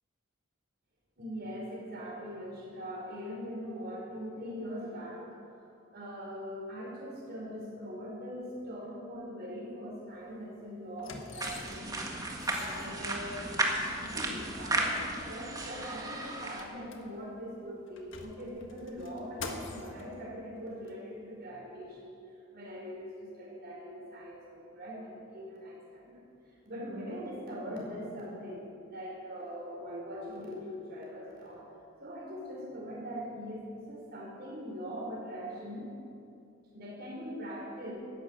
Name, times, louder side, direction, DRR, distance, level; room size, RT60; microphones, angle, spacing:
voice 1, 1.2-5.2 5.9-11.9 12.5-22.1 22.5-26.2 26.6-31.6 32.0-35.9 36.7-37.9, equal, 50° right, -3 dB, 5.0 m, -41 dB
sound 1, 10.1-10.3 11.0-12.0 12.3-13.6 14.4-14.5 14.8-14.9 15.3-17.4 17.9-20.1 20.9-21.0, left 4 dB, 65° left, 1.6 m, -46 dB
sound 2, 11.4-16.6, right 2 dB, 20° right, 1.7 m, -34 dB
13.0 x 11.5 x 9.0 m, 2.5 s
head